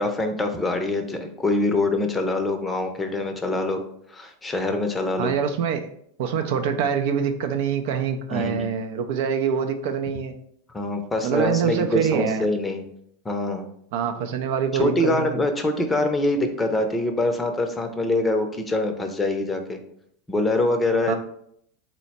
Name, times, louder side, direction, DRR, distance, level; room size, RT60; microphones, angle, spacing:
voice 1, 0.0-3.8 4.1-5.3 8.3-8.7 10.7-12.8 13.2-13.6 14.8-19.8 20.3-21.1, left 2 dB, 15° left, 5 dB, 0.6 m, -24 dB
voice 2, 5.2-5.9 6.2-10.3 11.2-12.4 13.9-15.4 21.1-21.2, right 7 dB, 65° right, 6 dB, 0.4 m, -25 dB
4.0 x 2.1 x 4.1 m, 0.69 s
hypercardioid pair, 95°, 0 cm